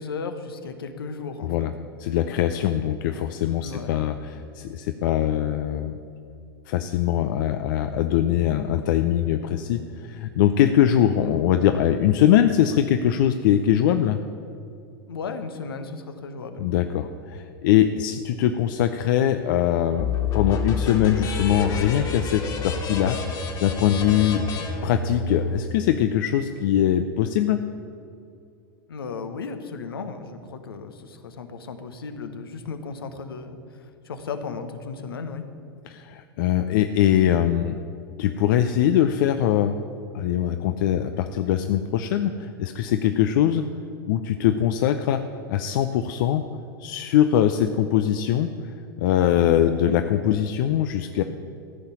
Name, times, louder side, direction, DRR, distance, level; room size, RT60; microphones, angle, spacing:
voice 1, 0.0-1.7 3.6-3.9 15.1-16.6 24.4-24.7 28.9-35.4, left 4 dB, 80° left, 8 dB, 1.0 m, -35 dB
voice 2, 2.0-5.9 6.7-14.2 16.6-24.5 24.8-27.6 35.9-37.8 38.2-39.7 40.1-43.6 44.1-45.2 45.5-46.4 46.8-51.2, left 10 dB, 60° left, 8 dB, 0.6 m, -22 dB
sound 1, 20.0-25.6, left 4 dB, 35° left, 1.9 m, -28 dB
14.5 x 5.6 x 8.1 m, 2.5 s
hypercardioid pair, 90°, 12 cm